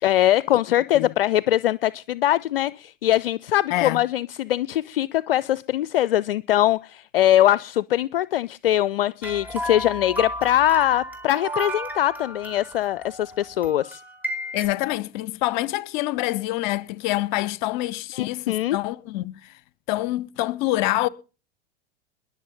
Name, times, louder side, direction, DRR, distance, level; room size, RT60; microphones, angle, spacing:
voice 1, 0.0-14.0 18.2-18.8, left 13 dB, 70° left, 0.6 m, -22 dB
voice 2, 3.7-4.0 14.5-19.5 19.9-21.1, left 17 dB, 50° left, 1.1 m, -26 dB
sound 1, 9.2-14.7, equal, 5° right, 4.3 m, -33 dB
21.5 x 7.2 x 5.2 m
figure-of-eight pair, 90°, 29 cm